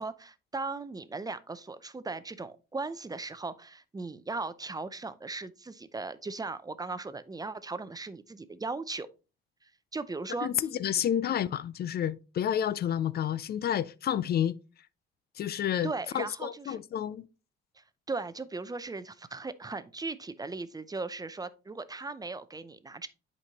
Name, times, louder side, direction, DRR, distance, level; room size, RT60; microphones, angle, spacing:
voice 1, 0.0-9.1 9.6-10.5 15.8-16.8 17.8-23.1, right 3 dB, 20° right, 0.5 m, -38 dB
voice 2, 10.4-14.5 15.4-17.3, left 10 dB, 50° left, 0.4 m, -30 dB
8.0 x 5.3 x 2.9 m
cardioid pair, 90°, 20 cm